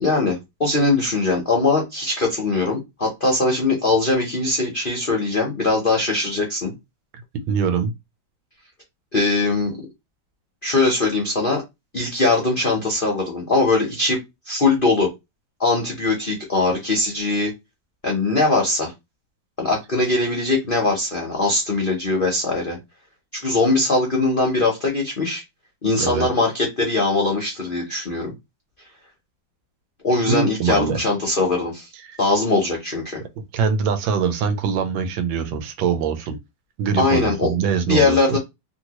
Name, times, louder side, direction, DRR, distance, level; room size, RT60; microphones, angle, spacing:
voice 1, 0.0-6.7 9.1-9.8 10.6-11.6 11.9-14.2 14.5-15.1 15.6-17.5 18.0-18.9 19.6-22.8 23.3-25.4 25.8-28.3 30.0-31.9 32.2-33.2 37.0-37.5 37.9-38.4, left 3 dB, 50° left, 0.6 m, -21 dB
voice 2, 7.5-7.9 26.0-26.3 30.3-31.0 32.1-32.2 33.5-36.4 36.8-38.4, right 6 dB, 85° right, 1.4 m, -23 dB
3.1 x 2.7 x 2.9 m
omnidirectional pair, 2.1 m